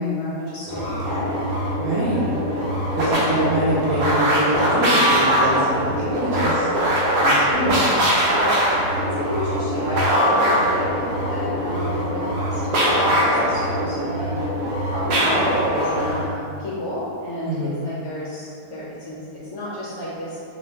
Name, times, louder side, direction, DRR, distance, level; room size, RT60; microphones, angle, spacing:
voice 1, 0.0-1.3 3.3-3.5 7.6-14.4 14.9-17.6 17.8-20.4, left 1 dB, 60° left, -7 dB, 0.9 m, -32 dB
sound 1, 0.6-16.3, equal, 85° right, 1.2 m, -21 dB
voice 2, 1.8-2.2 2.9-6.9 7.2-7.8 17.5-17.8, right 1 dB, 60° right, -7 dB, 0.9 m, -24 dB
3.2 x 3.1 x 2.7 m, 2.4 s
omnidirectional pair, 1.7 m